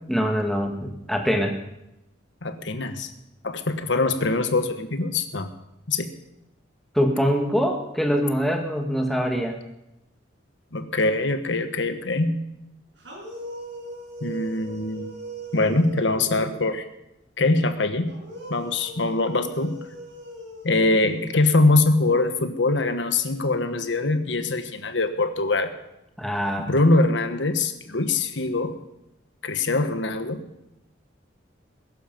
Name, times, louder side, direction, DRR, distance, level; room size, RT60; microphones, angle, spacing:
voice 1, 0.1-1.6 6.9-9.6 26.2-26.7, equal, ahead, 2 dB, 1.6 m, -24 dB
voice 2, 2.4-3.1 3.4-5.5 5.9-6.1 10.7-12.4 14.2-15.1 15.5-16.8 17.4-18.2 18.5-19.8 20.6-25.7 26.7-28.8 29.4-30.4, left 2 dB, 75° left, 9 dB, 1.3 m, -23 dB
sound 1, 13.0-16.7 18.1-21.7, right 1 dB, 70° right, 6.0 m, -39 dB
20.0 x 11.5 x 5.3 m, 0.90 s
head